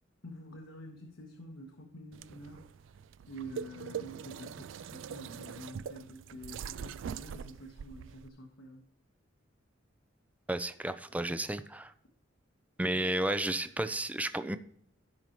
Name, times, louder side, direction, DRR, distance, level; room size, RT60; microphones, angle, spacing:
voice 1, 0.2-2.6 3.3-8.8 12.8-13.1, equal, 85° left, 1 dB, 1.3 m, -47 dB
sound 1, 2.1-8.3, right 7 dB, 70° right, 0.3 m, -43 dB
voice 2, 10.5-11.9 12.8-14.6, right 1 dB, 5° right, 11 dB, 0.5 m, -32 dB
16.0 x 5.5 x 3.0 m, 0.66 s
head